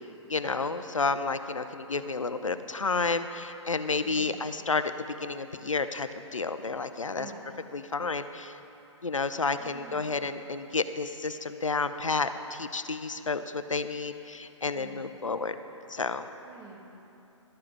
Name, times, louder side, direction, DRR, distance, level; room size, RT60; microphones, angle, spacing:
voice 1, 0.3-4.9 5.2-7.3 7.7-8.5 9.0-15.6 15.9-16.3, left 4 dB, 85° left, 11 dB, 0.5 m, -31 dB
voice 2, 4.0-4.4 7.2-7.4 9.6-10.1 14.7-15.0 16.4-16.9, right 5 dB, 20° right, -1 dB, 1.4 m, -48 dB
12.5 x 7.6 x 4.6 m, 2.9 s
figure-of-eight pair, 125°, 16 cm